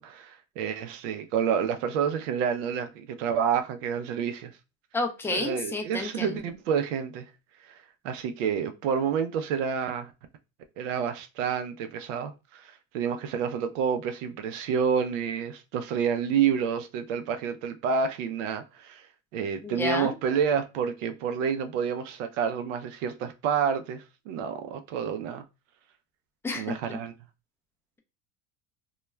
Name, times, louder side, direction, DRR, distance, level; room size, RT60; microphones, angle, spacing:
voice 1, 0.0-4.5 5.3-7.3 7.6-7.8 8.0-10.1 10.8-19.1 19.3-25.4 26.5-27.1, right 7 dB, 85° right, 0.5 m, -29 dB
voice 2, 4.9-6.4 19.6-20.1 26.4-26.8, left 3 dB, 5° left, 0.3 m, -30 dB
2.2 x 2.2 x 3.0 m
supercardioid pair, 115°, 37 cm